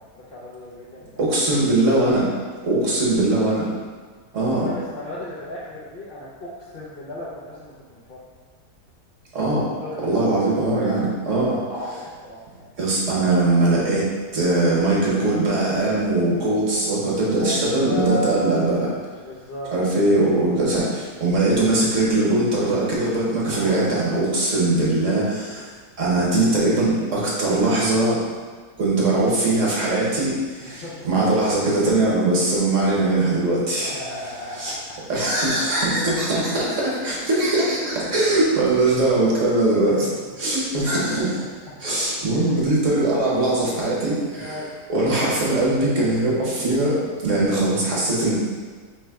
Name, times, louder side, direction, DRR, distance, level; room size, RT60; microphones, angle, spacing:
voice 1, 0.0-1.3 1.7-1.9 2.4-2.5 3.3-3.4 4.5-8.2 9.6-12.7 17.3-18.6 19.2-20.2 23.5-23.8 30.6-31.1 33.8-35.0 37.8-38.0 39.3-39.5 39.8-40.1 40.8-41.2 43.2-43.3 44.4-44.7 47.4-47.6, left 1 dB, 55° left, -8 dB, 0.6 m, -35 dB
voice 2, 1.2-2.2 2.6-3.7 4.3-4.7 9.3-9.7 10.0-11.6 12.8-14.1 14.3-18.8 19.7-25.6 26.0-28.2 28.8-30.3 30.6-33.9 34.6-34.7 35.1-40.1 40.4-41.3 41.8-44.5 44.9-47.0 47.2-48.3, right 2 dB, 55° right, -5 dB, 1.2 m, -21 dB
3.3 x 3.1 x 4.6 m, 1.5 s
omnidirectional pair, 1.7 m